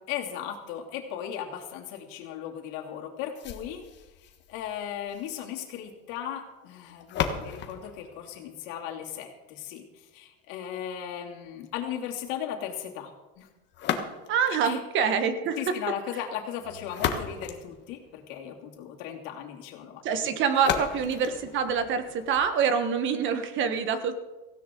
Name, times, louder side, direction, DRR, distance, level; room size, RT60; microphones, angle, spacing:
voice 1, 0.1-13.1 13.4-13.5 13.9-14.0 14.6-14.8 15.6-20.3 20.7-20.9, left 9 dB, 65° left, 0 dB, 2.9 m, -37 dB
sound 1, 3.3-9.3 13.7-14.6 16.6-18.5 20.5-22.5, left 8 dB, 35° left, 1.5 m, -36 dB
voice 2, 14.3-15.6 20.0-24.2, right 6 dB, 40° right, 9 dB, 1.3 m, -26 dB
17.5 x 16.0 x 3.9 m, 1.1 s
cardioid pair, 155°, 31 cm